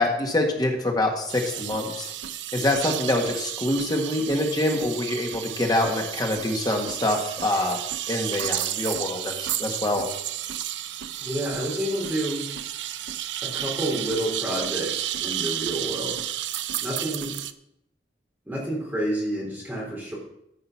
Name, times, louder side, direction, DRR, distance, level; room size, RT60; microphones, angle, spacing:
voice 1, 0.0-2.1 2.5-7.8 8.1-10.1, left 1 dB, 20° left, 2 dB, 1.8 m, -25 dB
sound 1, 1.3-17.5, right 12 dB, 80° right, 0.5 m, -32 dB
voice 2, 11.2-12.4 13.4-16.2 16.8-17.3 18.4-20.2, right 1 dB, 10° right, -6 dB, 3.3 m, -29 dB
14.0 x 5.4 x 5.9 m, 0.78 s
head